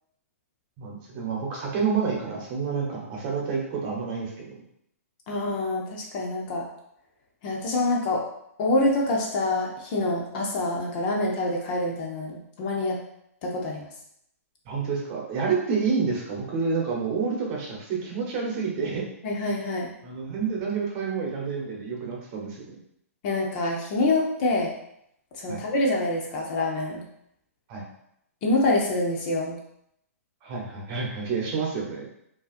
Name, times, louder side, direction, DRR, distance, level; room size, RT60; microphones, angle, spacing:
voice 1, 0.8-4.5 14.6-19.1 20.0-22.8 25.5-25.6 27.7-27.8 30.4-32.1, right 5 dB, 30° right, -2 dB, 1.0 m, -29 dB
voice 2, 5.3-6.6 7.4-8.2 8.6-13.0 13.4-13.9 19.2-19.9 23.2-24.7 25.4-27.0 28.4-29.6, left 2 dB, 35° left, -1 dB, 0.8 m, -26 dB
5.3 x 2.8 x 2.5 m, 0.75 s
hypercardioid pair, 150°, 8 cm